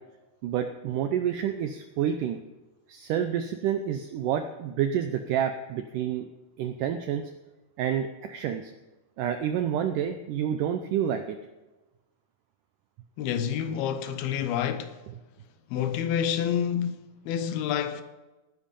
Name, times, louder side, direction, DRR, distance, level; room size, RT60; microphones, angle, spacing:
voice 1, 0.4-2.4 2.9-6.3 6.6-7.3 7.8-8.7 9.2-11.4, right 9 dB, 80° right, 1.9 m, -28 dB
voice 2, 13.2-15.0 15.7-18.0, left 9 dB, 80° left, 2.7 m, -28 dB
18.0 x 10.0 x 5.3 m
omnidirectional pair, 4.6 m